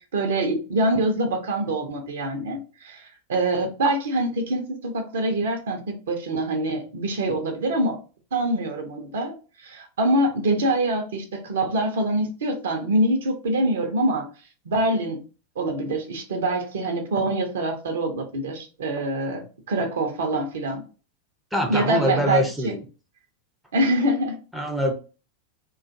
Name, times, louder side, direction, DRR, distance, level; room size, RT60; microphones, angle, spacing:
voice 1, 0.1-8.0 8.3-14.2 14.6-15.2 15.6-20.8 21.7-22.8 23.7-24.4, right 1 dB, 60° right, 0.6 m, -25 dB
voice 2, 21.5-22.8 24.5-24.9, equal, ahead, 0.5 m, -24 dB
2.4 x 2.3 x 2.6 m
figure-of-eight pair, 90°, 0 cm